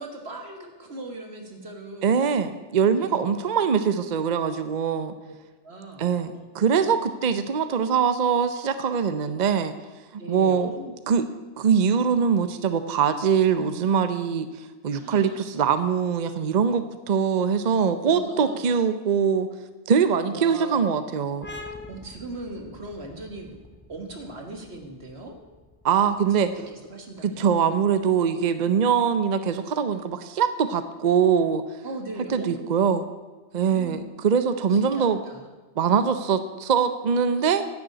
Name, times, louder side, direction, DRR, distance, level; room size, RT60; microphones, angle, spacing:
voice 1, 0.0-2.2 3.0-3.4 5.3-5.4 5.6-6.1 6.3-6.8 10.2-10.9 14.9-15.4 18.0-18.6 20.3-20.8 21.9-23.5 23.9-25.4 26.4-27.5 31.8-32.7 33.6-34.0 34.7-35.4, right 2 dB, 75° right, 3 dB, 2.0 m, -39 dB
voice 2, 2.0-5.1 6.0-9.7 10.1-10.7 11.1-11.2 11.6-19.5 19.9-21.5 25.8-26.5 27.2-31.6 32.3-33.0 33.5-35.2 35.8-37.7, right 7 dB, 50° right, 11 dB, 0.7 m, -23 dB
sound 1, 21.4-28.7, left 2 dB, 10° left, 1.0 m, -46 dB
10.5 x 6.6 x 8.8 m, 1.3 s
omnidirectional pair, 1.1 m